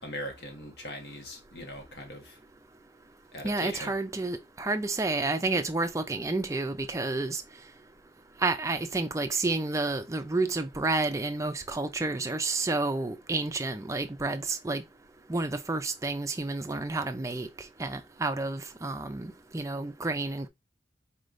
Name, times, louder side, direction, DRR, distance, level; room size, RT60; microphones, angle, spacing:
voice 1, 0.0-2.4 3.3-3.9, left 1 dB, 60° left, 1.4 m, -40 dB
voice 2, 3.4-7.4 8.4-14.8 15.3-17.5 17.8-20.5, right 3 dB, 15° right, 0.4 m, -30 dB
4.4 x 3.2 x 2.5 m
head